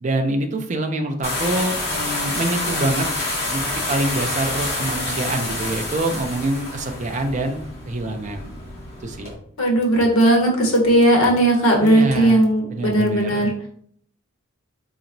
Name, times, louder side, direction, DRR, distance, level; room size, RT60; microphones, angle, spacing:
voice 1, 0.0-3.1 3.5-3.6 3.9-8.5 9.0-9.3 11.8-12.4 12.7-13.5, right 2 dB, 35° right, 5 dB, 0.4 m, -25 dB
sound 1, 1.2-9.3, left 2 dB, 45° left, 1.3 m, -27 dB
voice 2, 9.6-13.5, right 1 dB, 75° left, -1 dB, 1.1 m, -17 dB
4.2 x 2.9 x 2.6 m, 0.63 s
head